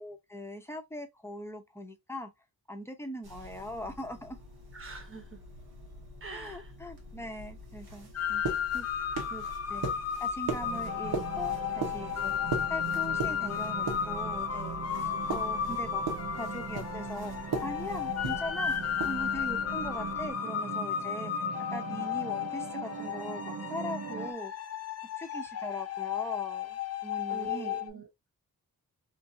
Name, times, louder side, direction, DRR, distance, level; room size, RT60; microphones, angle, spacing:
voice 1, 0.0-2.3 2.7-4.4 6.3-8.4 8.7-8.9 9.3-9.8 10.2-12.3 12.7-17.3 17.6-18.7 19.0-21.5 21.7-24.5 25.2-27.8, left 1 dB, 5° left, 0.6 m, -41 dB
sound 1, 3.2-20.3, right 3 dB, 85° right, 1.1 m, -40 dB
voice 2, 4.7-5.4 6.2-6.7 9.7-9.8 16.5-16.7 27.3-28.1, right 5 dB, 35° right, 1.0 m, -44 dB
sound 2, 8.1-27.9, left 9 dB, 45° left, 0.4 m, -34 dB
sound 3, 10.6-24.3, right 6 dB, 65° right, 0.6 m, -41 dB
2.9 x 2.6 x 2.6 m
wide cardioid pair, 95°, 36 cm